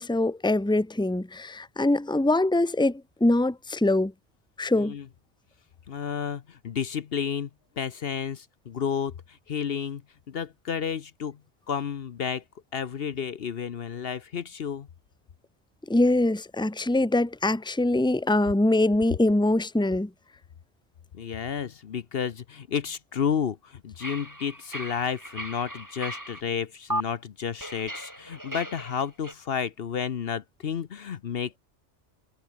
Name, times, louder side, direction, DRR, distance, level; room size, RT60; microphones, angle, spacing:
voice 1, 0.0-4.1 4.6-4.9 15.9-20.1, left 2 dB, 5° left, 1.3 m, -23 dB
voice 2, 4.8-5.1 5.9-7.5 7.8-10.0 10.3-11.4 11.7-12.4 12.7-14.9 21.1-31.6, left 7 dB, 60° left, 1.0 m, -31 dB
sound 1, 24.0-26.4 26.9-27.0 27.6-29.3, equal, 15° right, 7.7 m, -36 dB
omnidirectional pair, 1.2 m